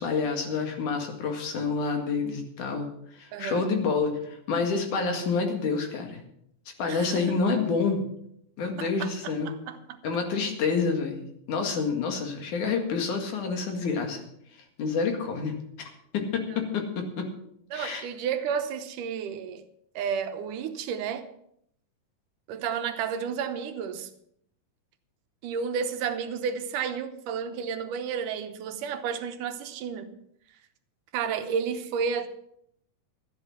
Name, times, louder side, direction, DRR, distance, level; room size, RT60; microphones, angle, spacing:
voice 1, 0.0-6.2 6.8-8.0 8.6-9.5 10.0-14.2 14.8-17.1 17.7-18.0, left 4 dB, 70° left, 3.4 m, -28 dB
voice 2, 3.3-3.7 6.9-7.2 8.8-10.0 17.7-19.6 20.0-21.3 22.5-24.1 25.4-30.1 31.1-32.3, right 7 dB, 80° right, 2.5 m, -32 dB
13.5 x 10.0 x 6.0 m
omnidirectional pair, 3.7 m